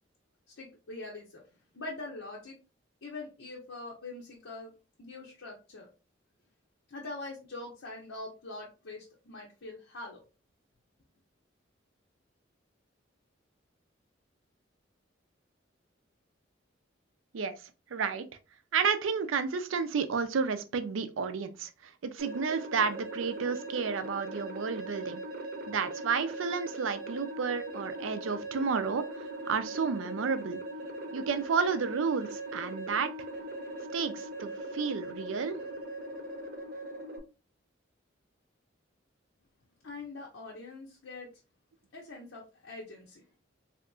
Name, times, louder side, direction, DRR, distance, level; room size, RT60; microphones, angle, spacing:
voice 1, 0.6-1.4 1.7-2.6 3.0-4.7 5.0-5.9 6.9-10.2 39.8-41.3 41.9-43.2, left 2 dB, 90° left, 0.8 m, -43 dB
voice 2, 17.9-18.3 18.7-25.2 25.7-30.6 31.1-33.1 33.9-35.6, right 5 dB, 90° right, 0.5 m, -31 dB
sound 1, 22.2-37.2, right 1 dB, 50° right, 0.7 m, -40 dB
3.6 x 2.8 x 2.3 m
head